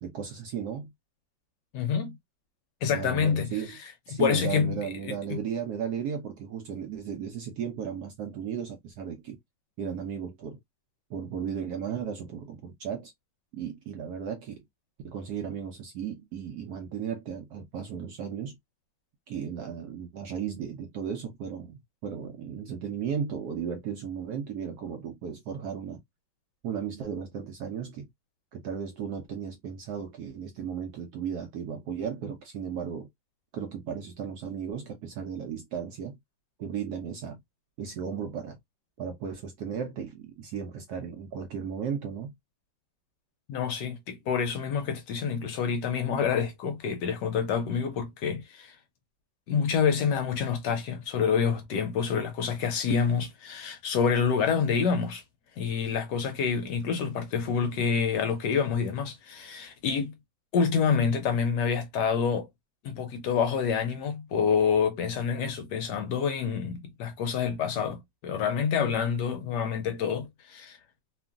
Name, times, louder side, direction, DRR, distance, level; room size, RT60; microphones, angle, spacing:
voice 1, 0.0-0.9 2.9-3.8 4.1-9.4 9.8-10.6 11.1-13.1 13.5-14.6 15.0-18.6 19.3-26.0 26.6-28.1 28.5-33.1 33.5-36.2 36.6-37.4 37.8-38.6 39.0-42.3, right 7 dB, 75° right, 0.9 m, -35 dB
voice 2, 1.7-2.1 2.8-3.8 4.1-5.2 43.5-48.8 49.5-55.2 55.6-60.1 60.5-62.5 62.8-70.8, left 6 dB, 75° left, 1.1 m, -27 dB
3.0 x 2.4 x 2.3 m
omnidirectional pair, 2.1 m